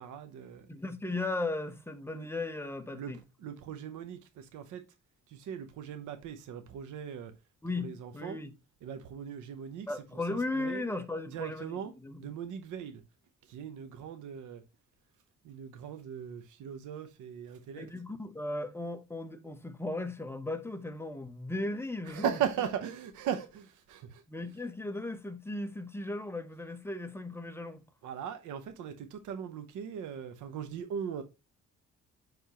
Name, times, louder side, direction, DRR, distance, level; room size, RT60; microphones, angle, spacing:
voice 1, 0.0-0.7 2.1-2.4 2.9-4.8 5.3-7.3 7.8-8.4 8.8-10.0 10.3-10.8 11.3-11.9 12.2-13.0 13.4-14.6 15.4-17.9 22.0-24.2 28.0-31.2, right 8 dB, 85° right, 0.9 m, -39 dB
voice 2, 0.7-3.2 7.6-8.5 9.9-12.2 17.8-22.3 24.3-27.8, left 2 dB, 10° left, 0.9 m, -36 dB
10.5 x 3.6 x 3.0 m
cardioid pair, 90°, 30 cm